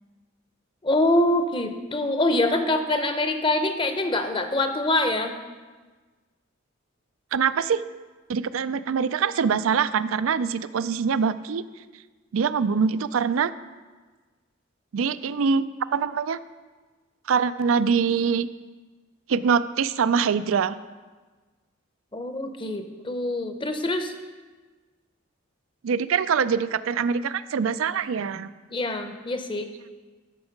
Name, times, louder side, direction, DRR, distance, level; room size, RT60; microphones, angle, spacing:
voice 1, 0.8-5.3 22.1-24.1 28.7-29.7, left 1 dB, 25° left, 7 dB, 0.7 m, -24 dB
voice 2, 7.3-7.8 8.3-11.6 12.3-13.5 14.9-16.4 17.3-18.5 19.3-20.8 25.8-28.5, right 6 dB, 90° right, 15 dB, 0.4 m, -24 dB
13.0 x 6.0 x 5.2 m, 1.4 s
head